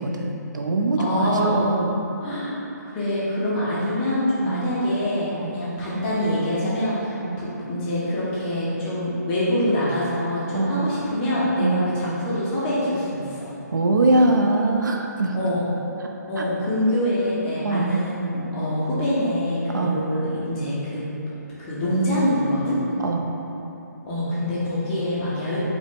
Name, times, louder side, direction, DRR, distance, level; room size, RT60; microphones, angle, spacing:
voice 1, 0.0-1.9 4.5-4.7 5.3-5.6 7.2-7.4 10.5-10.9 11.6-11.8 13.7-15.3 16.4-16.5 17.6-17.9 19.7-20.0 23.0-23.3, right 2 dB, 85° right, 1 dB, 0.5 m, -22 dB
voice 2, 1.0-1.7 2.2-2.5 2.9-13.5 15.3-15.7 16.3-21.1 21.6-22.8 24.0-25.6, left 1 dB, 10° left, -9 dB, 0.4 m, -25 dB
5.0 x 2.1 x 3.5 m, 2.9 s
hypercardioid pair, 170°, 10 cm